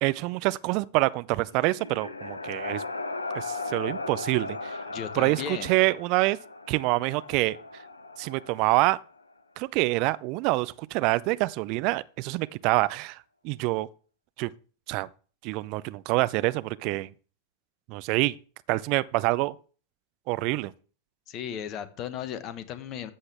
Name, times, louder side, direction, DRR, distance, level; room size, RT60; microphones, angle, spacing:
voice 1, 0.0-2.8 3.3-4.8 5.1-6.4 6.7-7.6 8.2-9.0 9.6-13.2 13.4-13.9 14.4-14.5 14.9-15.1 15.4-17.1 17.9-18.3 18.7-19.5 20.3-20.7, right 21 dB, 45° right, 0.5 m, -26 dB
sound 1, 1.3-9.2, left 3 dB, 80° left, 0.8 m, -37 dB
voice 2, 4.9-5.7 21.3-23.1, left 9 dB, 35° left, 1.2 m, -35 dB
14.0 x 7.7 x 3.5 m
figure-of-eight pair, 90°, 0 cm